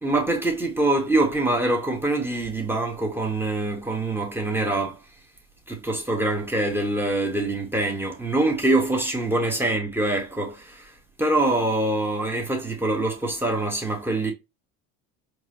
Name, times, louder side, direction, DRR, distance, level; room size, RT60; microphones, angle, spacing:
voice 1, 0.0-5.0 5.7-10.9 11.2-14.3, right 2 dB, 5° right, 1.5 m, -24 dB
4.7 x 2.6 x 2.8 m
hypercardioid pair, 75°, 46 cm